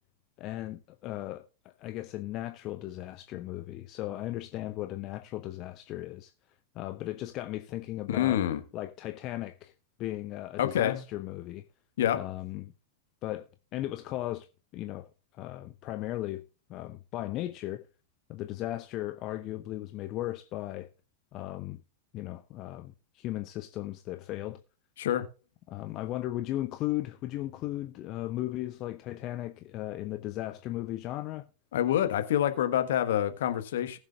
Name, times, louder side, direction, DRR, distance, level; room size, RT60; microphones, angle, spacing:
voice 1, 0.4-6.3 6.7-8.4 8.7-9.7 10.0-11.7 12.1-12.7 13.2-14.5 14.7-16.4 16.7-17.9 18.3-20.9 21.3-21.8 22.1-24.6 25.7-31.5, left 15 dB, 40° left, 0.7 m, -36 dB
voice 2, 8.1-8.6 10.6-11.0 12.0-12.2 25.0-25.3 31.7-34.0, left 11 dB, 60° left, 1.3 m, -27 dB
19.0 x 7.2 x 2.4 m
figure-of-eight pair, 90°, 0 cm